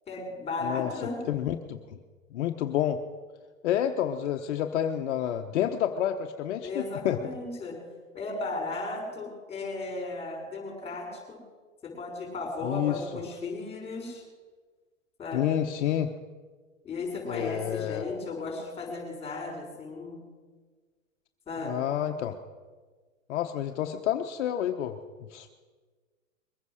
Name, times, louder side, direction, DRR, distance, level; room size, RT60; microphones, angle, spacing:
voice 1, 0.1-1.2 6.6-7.8 8.1-11.4 11.8-14.2 15.2-15.6 16.8-20.2 21.5-21.9, left 3 dB, 15° left, 1 dB, 5.5 m, -35 dB
voice 2, 0.6-0.9 1.2-1.8 2.3-3.0 3.6-7.2 12.6-13.0 15.3-16.1 17.3-18.0 21.6-22.4 23.3-25.0 25.3-25.5, left 10 dB, 55° left, 5 dB, 1.1 m, -29 dB
22.0 x 9.5 x 6.4 m, 1.4 s
hypercardioid pair, 135°, 40 cm